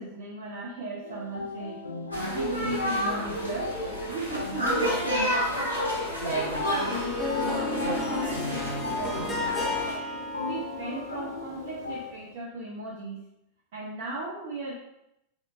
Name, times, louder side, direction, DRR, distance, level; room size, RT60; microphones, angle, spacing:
voice 1, 0.0-1.9 2.3-3.7 4.0-5.4 5.9-9.8 10.4-13.2 13.7-14.7, right 2 dB, 55° right, -5 dB, 0.6 m, -36 dB
sound 1, 1.0-12.1, left 4 dB, 80° left, 0.4 m, -37 dB
sound 2, 2.1-9.9, equal, 85° right, 0.9 m, -30 dB
Harp, 6.3-12.1, left 3 dB, 15° left, 0.6 m, -34 dB
3.6 x 3.6 x 2.4 m, 0.84 s
figure-of-eight pair, 90°, 0 cm